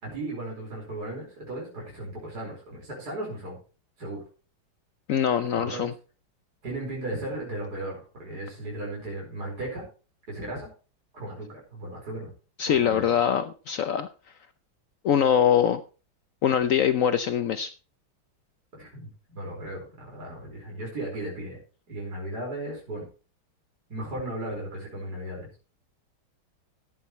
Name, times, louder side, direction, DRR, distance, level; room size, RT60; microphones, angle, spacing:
voice 1, 0.0-3.6 4.0-4.2 5.5-5.9 6.6-9.8 10.3-10.7 11.1-12.3 12.7-13.1 18.7-21.6 21.9-23.0 23.9-25.5, right 1 dB, 50° right, -3 dB, 5.4 m, -36 dB
voice 2, 5.1-5.9 12.6-14.1 15.0-15.8 16.4-17.7, left 9 dB, 75° left, 11 dB, 0.7 m, -23 dB
14.0 x 10.0 x 3.1 m, 0.35 s
omnidirectional pair, 2.2 m